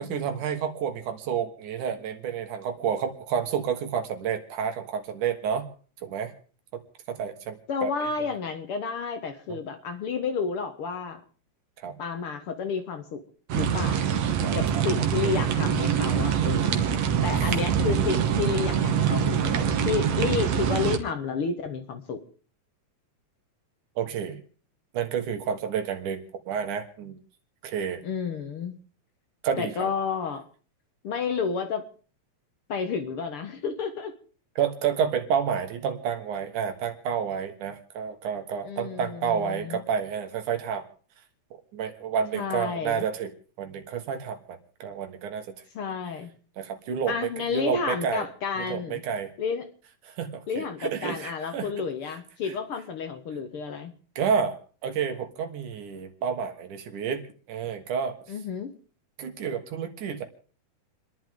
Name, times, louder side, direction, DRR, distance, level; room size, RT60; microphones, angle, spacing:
voice 1, 0.0-5.7 6.0-6.3 6.7-6.8 7.1-7.9 9.5-9.6 11.8-12.0 14.4-14.8 17.4-17.6 24.0-24.4 24.9-27.2 27.6-28.0 29.4-29.9 34.6-40.9 41.7-43.3 43.6-45.5 46.6-48.3 48.6-49.3 50.1-51.7 54.2-54.6 54.8-57.2 57.5-58.2 59.2-60.2, right 7 dB, 85° right, 7 dB, 3.1 m, -30 dB
voice 2, 7.7-11.2 12.0-13.2 13.5-14.1 14.6-16.8 17.2-22.2 28.0-28.8 29.6-30.4 31.0-31.8 32.7-34.1 38.7-39.8 42.3-43.1 45.8-46.3 47.1-49.0 49.4-49.6 50.5-53.9 58.3-58.7, left 5 dB, 55° left, 7 dB, 1.8 m, -31 dB
sound 1, 13.5-21.0, right 8 dB, 65° right, 2.3 m, -24 dB
29.0 x 11.0 x 3.7 m, 0.42 s
omnidirectional pair, 3.5 m